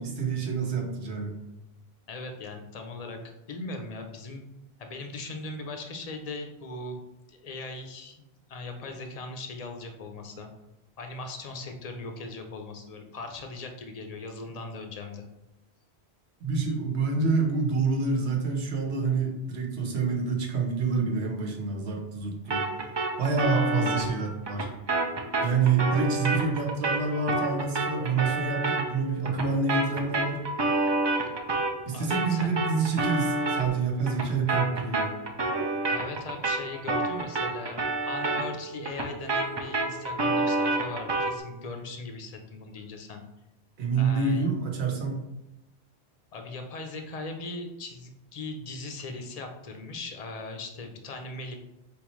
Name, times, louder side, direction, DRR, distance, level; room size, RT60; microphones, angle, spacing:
voice 1, 0.0-1.4 16.4-22.6 23.2-24.7 25.4-30.4 31.9-35.2 43.8-45.2, right 4 dB, 90° right, 2 dB, 1.1 m, -27 dB
voice 2, 2.1-4.4 4.8-7.0 7.3-10.5 11.0-15.3 28.2-28.5 31.9-32.6 35.9-43.2 44.0-44.5 46.3-51.5, left 3 dB, 45° left, 4 dB, 0.6 m, -39 dB
sound 1, 22.5-31.8 32.1-41.4, right 2 dB, 40° right, 0.4 m, -29 dB
4.3 x 3.6 x 3.1 m, 0.92 s
omnidirectional pair, 1.1 m